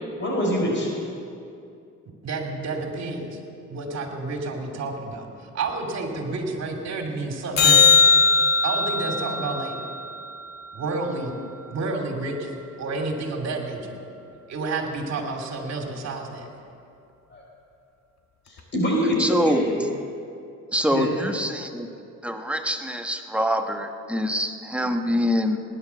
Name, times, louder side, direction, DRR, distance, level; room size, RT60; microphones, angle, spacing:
voice 1, 0.2-0.9 17.3-17.4 18.5-19.7 20.9-21.1, equal, 40° left, -1 dB, 4.6 m, -24 dB
voice 2, 2.2-3.4 3.7-7.9 8.6-9.8 10.7-11.4 11.7-12.5 12.8-14.0 14.5-16.5, right 3 dB, 60° right, 3 dB, 2.8 m, -30 dB
sound 1, 7.6-12.0 18.6-18.7, left 5 dB, 60° left, 1.8 m, -21 dB
voice 3, 19.2-19.9 20.7-21.9 22.2-25.6, equal, 5° right, 5 dB, 1.2 m, -25 dB
18.0 x 11.0 x 7.0 m, 2.5 s
cardioid pair, 90°, 30 cm